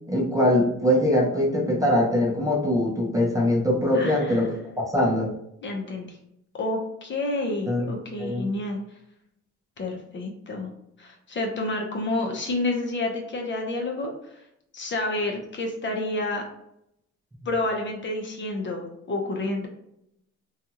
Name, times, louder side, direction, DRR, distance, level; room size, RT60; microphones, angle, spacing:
voice 1, 0.1-5.3 7.7-7.9 8.2-8.4, left 1 dB, 10° right, -1 dB, 0.6 m, -22 dB
voice 2, 3.9-4.4 5.6-6.2 6.5-8.8 9.8-10.7 11.0-14.4 14.7-16.4 17.4-19.7, left 2 dB, 40° left, 2 dB, 0.7 m, -29 dB
2.6 x 2.4 x 2.8 m, 0.78 s
cardioid pair, 90°, 30 cm